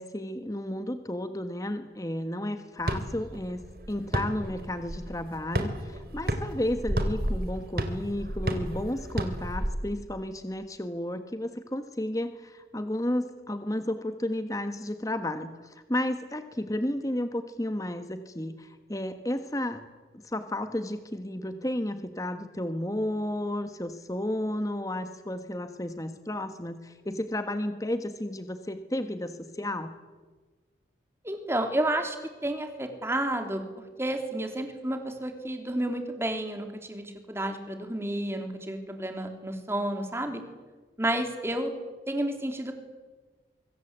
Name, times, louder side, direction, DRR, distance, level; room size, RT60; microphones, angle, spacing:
voice 1, 0.0-19.8 20.1-29.9, left 1 dB, 20° left, 8 dB, 1.4 m, -32 dB
sound 1, 2.8-9.7, equal, 55° right, 3.2 m, -32 dB
voice 2, 31.2-32.2 32.4-33.6 34.0-40.4 41.0-41.7 42.1-42.7, right 1 dB, 15° right, 5 dB, 3.4 m, -31 dB
25.5 x 24.5 x 8.2 m, 1.3 s
head